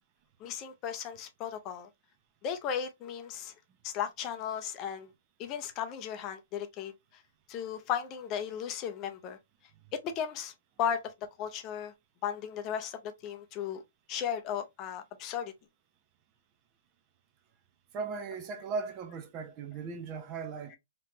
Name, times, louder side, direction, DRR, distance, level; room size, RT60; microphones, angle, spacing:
voice 1, 0.4-1.9 2.4-3.5 3.8-5.1 5.4-6.9 7.5-9.4 9.9-10.5 10.8-11.1 11.4-11.9 12.2-13.8 14.1-15.5, left 8 dB, 30° left, 0.5 m, -35 dB
voice 2, 17.9-20.8, right 5 dB, 30° right, 0.6 m, -37 dB
3.3 x 2.9 x 2.7 m
hypercardioid pair, 140°, 0 cm